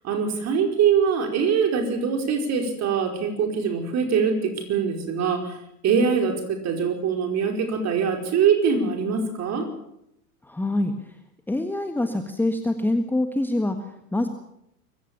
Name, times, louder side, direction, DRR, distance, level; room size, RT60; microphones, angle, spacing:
voice 1, 0.0-5.6 5.8-9.7, right 6 dB, 35° right, 4 dB, 5.0 m, -23 dB
voice 2, 10.4-11.1 11.5-14.3, left 1 dB, 5° left, 6 dB, 1.5 m, -25 dB
24.0 x 16.0 x 7.3 m, 0.78 s
figure-of-eight pair, 90°, 47 cm